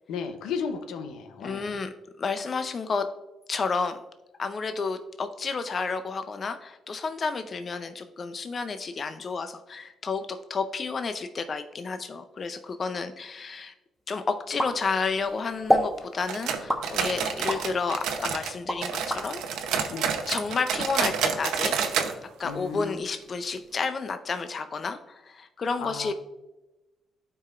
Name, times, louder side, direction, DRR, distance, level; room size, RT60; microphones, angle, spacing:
voice 1, 0.1-1.8 19.9-20.2 22.4-23.0 25.8-26.1, left 6 dB, 85° left, 7 dB, 0.8 m, -34 dB
voice 2, 1.4-1.9 2.2-3.1 3.5-4.0 4.4-13.7 14.1-19.4 20.3-21.8 22.4-26.1, left 4 dB, 45° left, 9 dB, 0.5 m, -31 dB
sound 1, 14.6-15.3 15.7-16.0 16.7-17.7 18.2-19.2, equal, 5° left, 1.1 m, -26 dB
sound 2, 16.3-18.5 18.8-22.1 22.4-22.5 22.9-23.0 23.6-23.7, right 7 dB, 85° right, 0.7 m, -29 dB
11.5 x 4.8 x 2.4 m, 1.0 s
cardioid pair, 90°, 0 cm